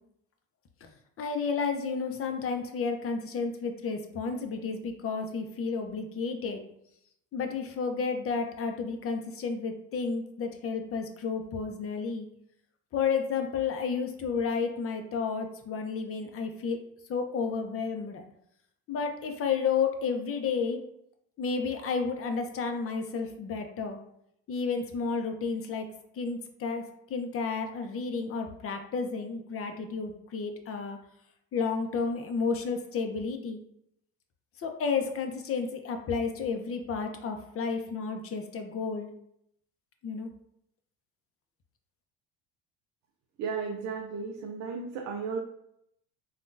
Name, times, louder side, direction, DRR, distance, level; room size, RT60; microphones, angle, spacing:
voice 1, 1.2-6.6 7.3-12.3 12.9-16.8 17.1-18.2 18.9-20.8 21.4-24.0 24.5-25.9 26.1-26.8 27.1-31.0 31.5-33.6 34.6-39.1 40.0-40.3, left 5 dB, 40° left, 5 dB, 0.7 m, -31 dB
voice 2, 43.4-45.4, right 5 dB, 55° right, 3 dB, 0.6 m, -34 dB
3.5 x 2.4 x 2.6 m, 0.75 s
hypercardioid pair, 75°, 34 cm